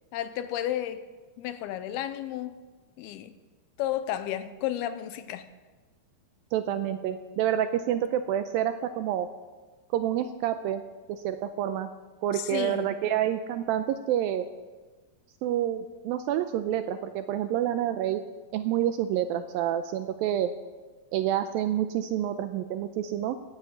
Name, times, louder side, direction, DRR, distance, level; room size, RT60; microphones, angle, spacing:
voice 1, 0.1-1.0 1.4-2.6 3.0-3.3 3.8-5.5 12.3-12.9, left 12 dB, 85° left, 12 dB, 2.6 m, -32 dB
voice 2, 6.5-9.3 9.9-10.8 11.1-11.9 12.2-14.4 15.4-18.2 18.5-20.5 21.1-23.4, right 11 dB, 80° right, 9 dB, 2.1 m, -28 dB
16.5 x 9.6 x 7.2 m, 1.3 s
omnidirectional pair, 4.6 m